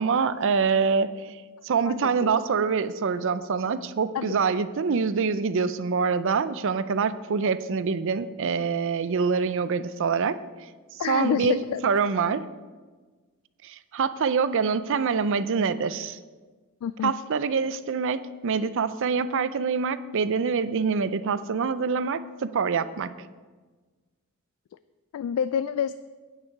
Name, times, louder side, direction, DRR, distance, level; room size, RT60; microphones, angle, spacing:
voice 1, 0.0-10.4 11.1-12.4 13.6-16.2 17.0-23.1, right 5 dB, 60° right, 14 dB, 0.5 m, -25 dB
voice 2, 1.9-2.3 4.1-4.4 11.0-11.8 16.8-17.1 24.7-24.8 25.1-25.9, left 8 dB, 80° left, 14 dB, 0.3 m, -28 dB
9.1 x 8.8 x 4.6 m, 1.4 s
head